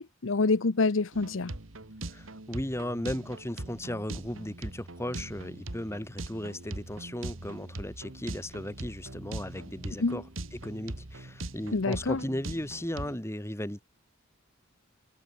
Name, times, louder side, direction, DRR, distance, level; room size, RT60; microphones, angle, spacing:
voice 1, 0.0-1.5 10.0-10.2 11.7-12.2, left 3 dB, 70° left, 0.8 m, -27 dB
sound 1, 1.1-13.2, right 2 dB, 80° right, 2.3 m, -41 dB
voice 2, 2.1-10.2 10.5-13.8, left 1 dB, 15° left, 2.6 m, -36 dB
head